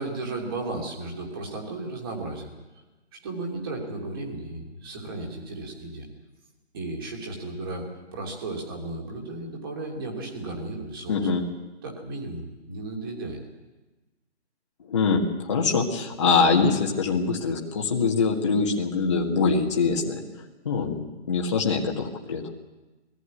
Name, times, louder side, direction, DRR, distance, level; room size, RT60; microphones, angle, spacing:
voice 1, 0.0-2.5 3.1-6.1 6.7-11.3 11.8-13.4, right 2 dB, 20° right, 0 dB, 2.9 m, -34 dB
voice 2, 11.1-11.4 14.9-20.2 20.7-22.4, left 4 dB, 25° left, -2 dB, 1.7 m, -23 dB
21.5 x 15.0 x 9.7 m, 1.1 s
hypercardioid pair, 175°, 35 cm